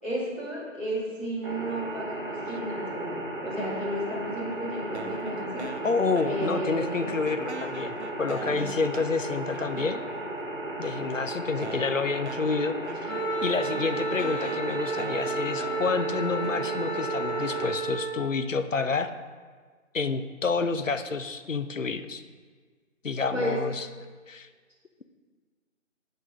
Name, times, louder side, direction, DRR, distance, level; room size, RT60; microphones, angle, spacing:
voice 1, 0.0-5.7 6.2-7.0 8.4-8.7 23.3-23.6, right 1 dB, 10° left, -16 dB, 2.2 m, -33 dB
sound 1, 1.4-17.7, right 1 dB, 40° right, 1.9 m, -35 dB
sound 2, 4.9-6.8 7.1-10.3 11.0-11.1 11.6-17.0, right 2 dB, 55° right, 0.7 m, -42 dB
voice 2, 5.8-10.0 10.8-13.1 13.4-19.1 19.9-22.2 23.0-23.9 24.3-24.5, left 4 dB, 70° left, 10 dB, 0.7 m, -29 dB
Wind instrument woodwind instrument, 13.1-18.2, right 3 dB, 20° right, 1.6 m, -32 dB
8.2 x 6.6 x 6.1 m, 1.5 s
figure-of-eight pair, 170°, 40 cm